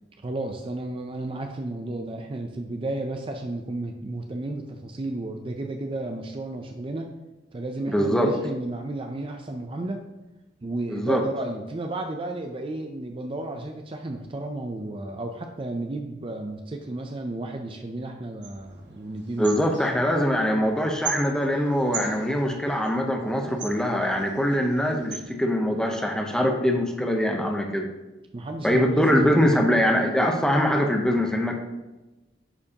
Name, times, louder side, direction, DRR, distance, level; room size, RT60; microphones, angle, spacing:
voice 1, 0.2-7.1 7.5-10.0 10.6-19.5 28.3-29.4, right 2 dB, 30° right, 4 dB, 0.5 m, -33 dB
voice 2, 7.9-8.3 10.9-11.2 19.4-27.9 28.6-31.6, equal, 5° left, 2 dB, 0.8 m, -23 dB
sound 1, 18.4-25.4, right 6 dB, 70° right, 1.0 m, -40 dB
9.8 x 4.6 x 2.8 m, 1.1 s
head